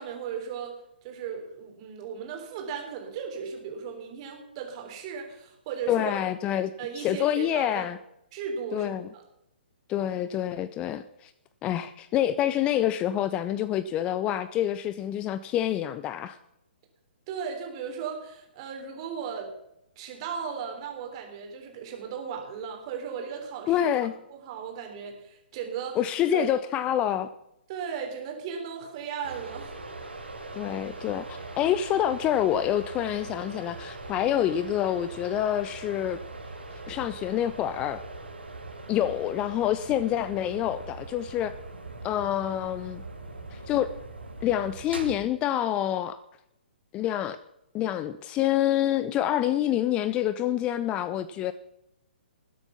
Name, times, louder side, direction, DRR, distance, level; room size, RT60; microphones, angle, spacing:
voice 1, 0.0-6.1 6.8-7.9 8.3-9.2 17.3-19.5 20.0-23.9 24.3-26.0 26.3-26.4 27.7-29.8 39.0-39.1, right 6 dB, 30° right, 3.6 m, -36 dB
voice 2, 5.9-8.0 8.7-9.1 9.9-11.3 11.6-16.4 23.7-24.1 26.0-27.3 30.5-36.2 36.9-38.0 38.9-41.5 42.0-43.0 43.5-43.9 44.4-46.2 46.9-47.4 47.7-51.5, left 11 dB, 20° left, 0.4 m, -27 dB
sound 1, 29.2-45.2, right 2 dB, 80° right, 2.9 m, -41 dB
20.0 x 7.9 x 5.8 m
figure-of-eight pair, 125°, 6 cm